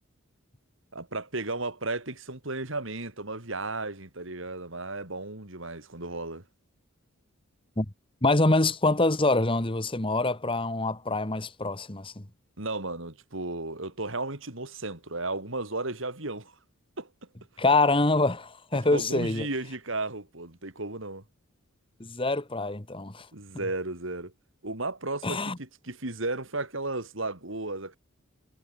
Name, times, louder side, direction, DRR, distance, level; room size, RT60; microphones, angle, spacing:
voice 1, 0.9-6.4 12.6-16.6 17.0-17.1 18.7-21.2 23.3-24.3 24.6-28.0, right 2 dB, 65° right, 3.4 m, -34 dB
voice 2, 8.2-12.2 17.6-19.5 22.0-23.3 25.2-25.6, left 2 dB, 25° left, 1.6 m, -25 dB
head